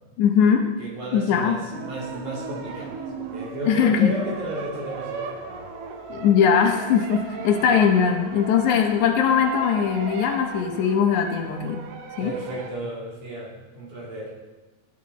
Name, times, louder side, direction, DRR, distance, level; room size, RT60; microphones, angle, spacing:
voice 1, 0.2-0.7 1.1-1.6 3.7-4.1 6.1-11.8 12.2-12.3, left 7 dB, 70° left, 4 dB, 2.3 m, -20 dB
voice 2, 0.8-5.6 7.6-7.7 12.2-14.3, right 1 dB, 70° right, -3 dB, 4.1 m, -34 dB
sound 1, 1.7-12.7, right 4 dB, 90° right, 2.7 m, -36 dB
16.0 x 10.0 x 4.2 m, 1.2 s
omnidirectional pair, 3.7 m